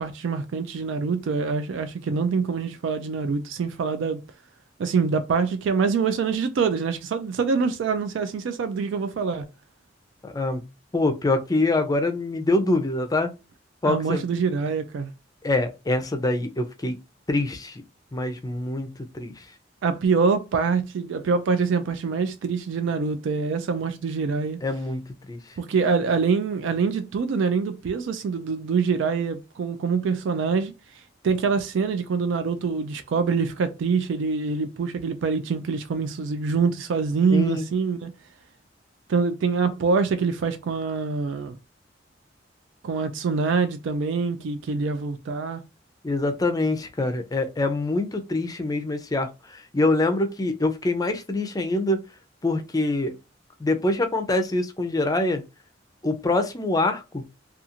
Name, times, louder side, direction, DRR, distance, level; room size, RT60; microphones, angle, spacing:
voice 1, 0.0-4.2 4.8-9.5 13.8-15.1 19.8-24.6 25.6-30.7 31.2-38.1 39.1-41.6 42.8-45.6, right 5 dB, 75° right, 0.3 m, -25 dB
voice 2, 10.2-10.7 10.9-13.3 13.8-14.2 15.4-17.0 17.3-17.8 18.1-19.4 24.6-25.4 37.3-37.7 46.0-52.0 52.4-53.1 53.6-55.4 56.0-57.2, left 2 dB, 20° left, 0.4 m, -25 dB
2.5 x 2.4 x 2.8 m
head